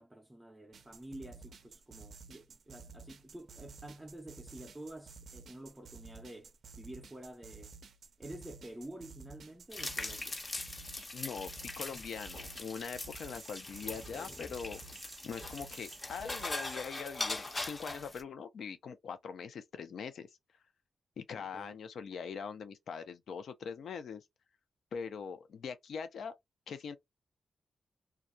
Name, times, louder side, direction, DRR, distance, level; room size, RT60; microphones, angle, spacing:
voice 1, 0.0-7.7 8.2-10.4 21.3-21.8, right 1 dB, 10° right, 0.5 m, -49 dB
sound 1, 0.7-16.9, right 5 dB, 75° right, 0.4 m, -53 dB
Frying an Egg, 9.7-18.2, left 2 dB, 30° left, 0.6 m, -41 dB
voice 2, 11.1-14.8 15.2-20.3 21.2-24.2 24.9-26.3 26.7-27.0, left 6 dB, 80° left, 0.5 m, -42 dB
2.3 x 2.1 x 2.5 m
cardioid pair, 90°, 0 cm